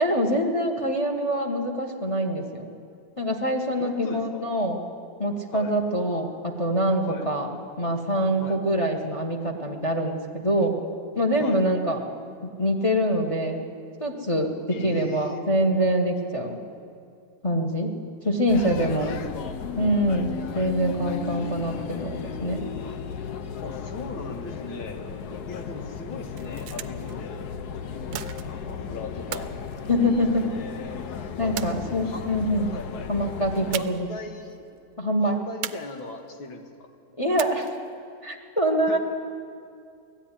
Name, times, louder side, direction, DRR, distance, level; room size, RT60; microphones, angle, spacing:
voice 1, 0.0-2.7 3.2-4.8 5.2-7.5 7.8-10.8 11.1-12.0 12.6-13.6 14.0-16.6 17.4-17.9 18.2-19.1 19.8-22.6 29.9-30.5 31.4-32.8 33.1-34.1 35.0-35.5 37.2-37.7 38.2-39.0, equal, 20° left, 2 dB, 1.3 m, -25 dB
voice 2, 3.8-4.4 5.5-5.7 7.0-7.3 8.4-8.6 11.4-11.6 14.7-15.4 18.8-19.6 23.6-25.0 25.5-27.5 28.6-29.5 30.0-31.1 31.4-32.3 32.7-32.9 33.7-34.6 35.2-36.9 38.9-39.0, left 3 dB, 85° left, 4 dB, 2.5 m, -38 dB
sound 1, 18.5-33.8, left 6 dB, 60° left, 1.3 m, -35 dB
sound 2, 26.3-27.2 28.1-28.8 29.3-30.6 31.6-32.3 33.7-34.2 34.5-34.6 35.6-36.4 37.4-37.9, right 11 dB, 75° right, 1.3 m, -37 dB
18.5 x 14.0 x 10.0 m, 2.4 s
omnidirectional pair, 2.1 m